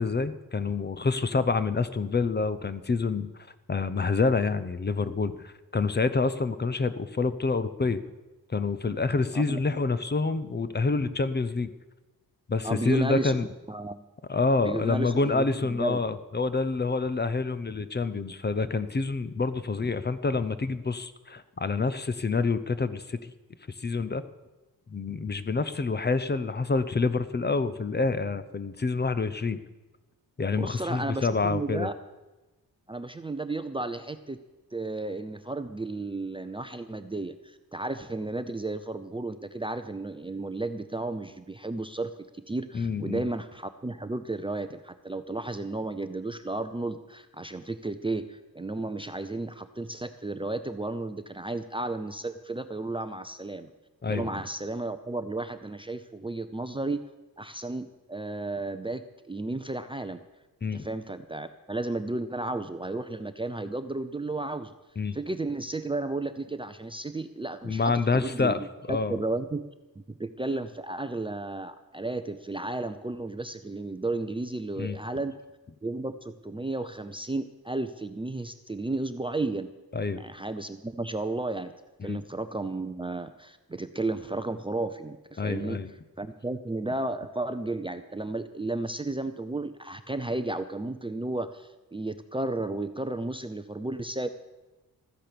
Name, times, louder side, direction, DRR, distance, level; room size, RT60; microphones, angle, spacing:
voice 1, 0.0-8.0 8.5-11.7 12.5-13.5 14.3-23.3 23.7-24.2 24.9-29.6 30.4-31.9 42.7-43.3 54.0-54.3 60.6-60.9 65.0-65.2 67.6-68.6 68.9-69.2 74.8-75.0 79.9-80.3 82.0-82.2 85.4-85.9, left 4 dB, 30° left, 13 dB, 0.7 m, -27 dB
voice 2, 12.6-13.4 13.7-14.0 14.6-16.0 30.6-31.9 32.9-34.4 34.7-53.7 54.1-57.0 57.4-60.2 60.7-64.7 65.1-69.7 70.0-75.3 75.8-79.7 80.2-81.7 82.0-85.8 86.2-94.3, right 2 dB, 15° right, 9 dB, 0.5 m, -33 dB
13.5 x 10.0 x 6.8 m, 1.1 s
wide cardioid pair, 130°, 37 cm